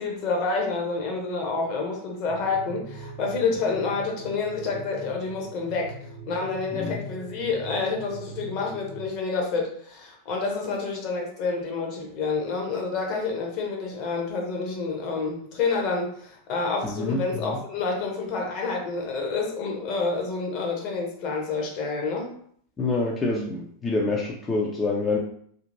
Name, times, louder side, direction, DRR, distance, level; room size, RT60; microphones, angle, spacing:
voice 1, 0.0-5.9 6.3-22.3, left 4 dB, 40° left, 1 dB, 0.7 m, -28 dB
sound 1, 2.2-9.1, right 1 dB, 55° right, 0.8 m, -41 dB
voice 2, 16.8-17.6 22.8-25.2, left 3 dB, 20° left, -2 dB, 0.4 m, -27 dB
2.8 x 2.6 x 2.5 m, 0.62 s
figure-of-eight pair, 90°, 0 cm